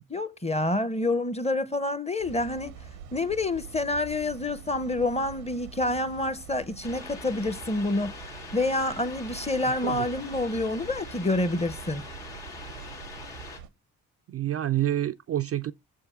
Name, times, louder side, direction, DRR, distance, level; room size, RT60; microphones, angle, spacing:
voice 1, 0.1-2.8 3.1-8.2 8.5-12.0, left 2 dB, 15° left, 0.7 m, -28 dB
sound 1, 2.2-13.7, right 8 dB, 85° right, 0.9 m, -45 dB
sound 2, 6.8-13.6, left 4 dB, 70° left, 1.8 m, -43 dB
voice 2, 14.3-15.7, right 12 dB, 35° right, 0.4 m, -28 dB
6.9 x 3.5 x 5.5 m
hypercardioid pair, 40°, 41 cm